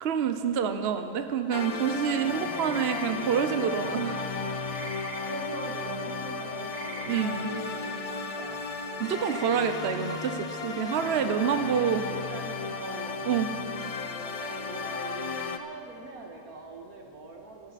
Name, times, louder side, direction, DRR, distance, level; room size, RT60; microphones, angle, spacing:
voice 1, 0.0-4.4 7.1-7.5 9.0-12.0 13.3-13.5, right 7 dB, 55° right, 8 dB, 0.8 m, -27 dB
sound 1, 1.5-15.6, left 4 dB, 45° left, 0.5 m, -34 dB
voice 2, 2.3-2.8 5.2-8.9 11.0-13.3 14.1-17.7, right 3 dB, 75° right, 1 dB, 2.1 m, -43 dB
sound 2, 2.4-3.1 4.7-5.2 6.7-7.2 9.0-9.6, right 2 dB, 25° right, 1.4 m, -42 dB
25.5 x 11.5 x 4.2 m, 2.6 s
omnidirectional pair, 1.6 m